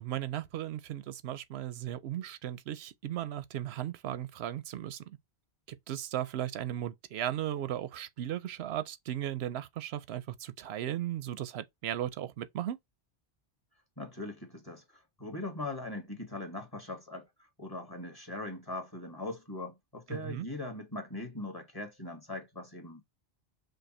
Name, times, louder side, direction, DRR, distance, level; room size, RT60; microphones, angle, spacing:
voice 1, 0.0-5.2 5.7-12.8 20.1-20.5, right 11 dB, 90° right, 0.8 m, -36 dB
voice 2, 14.0-17.3 17.6-23.0, left 2 dB, 20° left, 1.5 m, -40 dB
5.3 x 2.2 x 4.1 m
omnidirectional pair, 1.0 m